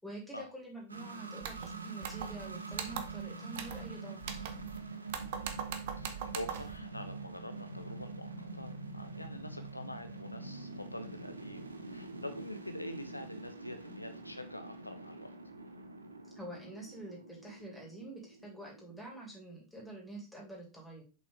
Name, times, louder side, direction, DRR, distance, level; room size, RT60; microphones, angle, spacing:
voice 1, 0.0-4.2 16.3-21.0, right 1 dB, 5° left, -2 dB, 3.3 m, -47 dB
sound 1, 0.9-19.4, right 3 dB, 80° right, 0.9 m, -45 dB
sound 2, 1.4-1.7 2.0-2.5 2.7-3.2 3.5-3.9 4.2-4.8 5.1-6.8, right 8 dB, 50° right, 1.0 m, -41 dB
voice 2, 5.1-5.7 6.0-11.7 11.9-15.3, left 1 dB, 85° left, 9 dB, 0.5 m, -45 dB
7.1 x 5.5 x 3.3 m, 0.33 s
figure-of-eight pair, 90°, 0 cm